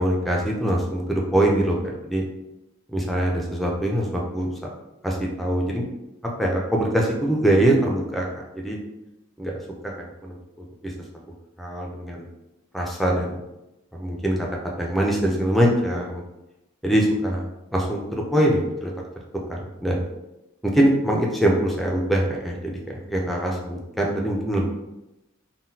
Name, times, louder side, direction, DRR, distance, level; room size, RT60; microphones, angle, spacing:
voice 1, 0.0-2.2 2.9-4.7 5.0-5.9 6.4-8.2 8.5-8.8 9.4-9.6 9.8-10.4 10.8-10.9 11.6-12.2 12.7-13.4 13.9-14.4 14.8-16.2 16.8-17.4 17.7-18.9 19.5-20.0 20.6-24.7, right 1 dB, ahead, -1 dB, 0.4 m, -23 dB
3.8 x 2.2 x 2.6 m, 0.94 s
head